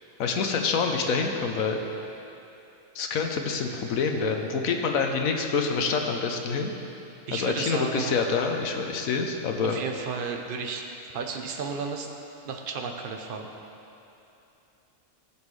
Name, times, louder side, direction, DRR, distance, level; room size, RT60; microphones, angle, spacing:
voice 1, 0.2-1.8 2.9-6.7 7.3-9.8, left 5 dB, 85° left, 3 dB, 1.2 m, -26 dB
voice 2, 7.3-8.2 9.6-10.9 11.1-12.1 12.4-13.5, right 5 dB, 45° right, 3 dB, 0.8 m, -33 dB
15.0 x 7.1 x 3.2 m, 2.8 s
omnidirectional pair, 1.4 m